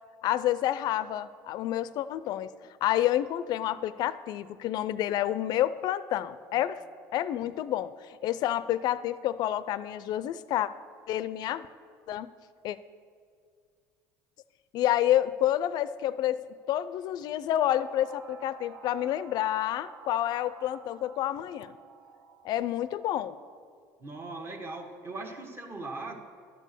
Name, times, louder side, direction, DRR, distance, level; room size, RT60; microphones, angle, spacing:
voice 1, 0.2-2.5 2.8-6.8 7.1-7.9 8.2-10.7 11.1-11.7 12.1-12.3 12.6-12.8 14.7-16.4 16.7-21.8 22.4-23.4, left 12 dB, 60° left, 15 dB, 0.4 m, -29 dB
sound 1, 17.6-23.7, right 5 dB, 65° right, 0.9 m, -51 dB
voice 2, 24.0-26.2, right 2 dB, 30° right, 4 dB, 1.3 m, -39 dB
11.5 x 5.4 x 6.7 m, 2.1 s
supercardioid pair, 90°, 8 cm